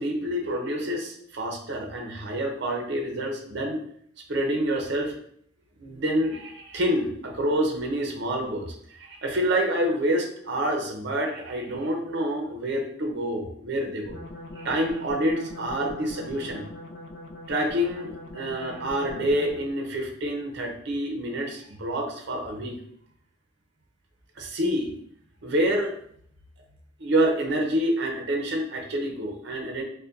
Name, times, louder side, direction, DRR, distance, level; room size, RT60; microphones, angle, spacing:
voice 1, 0.0-3.8 4.3-5.1 5.8-14.1 14.6-16.7 17.5-22.8 24.4-25.0 25.4-25.9 27.0-29.8, right 1 dB, 60° right, 2 dB, 0.7 m, -27 dB
sound 1, 14.0-19.8, left 1 dB, 65° left, 0.5 m, -41 dB
5.2 x 2.2 x 2.5 m, 0.65 s
head